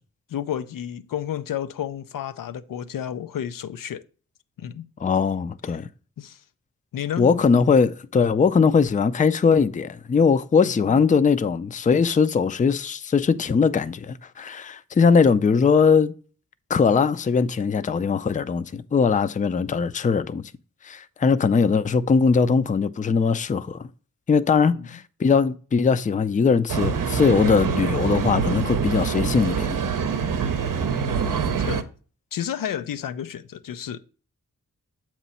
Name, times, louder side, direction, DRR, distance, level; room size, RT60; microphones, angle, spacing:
voice 1, 0.3-4.0 4.6-4.9 5.7-5.9 6.2-6.4 6.9-7.4 10.6-11.0 24.7-25.0 31.0-31.9 32.3-34.0, left 10 dB, 90° left, 0.5 m, -32 dB
voice 2, 5.0-5.9 7.2-16.1 16.7-20.4 20.8-23.8 24.3-29.8, left 5 dB, 25° left, 0.4 m, -20 dB
sound 1, 26.7-31.8, right 6 dB, 75° right, 0.7 m, -25 dB
7.3 x 3.0 x 5.5 m
wide cardioid pair, 70°, 32 cm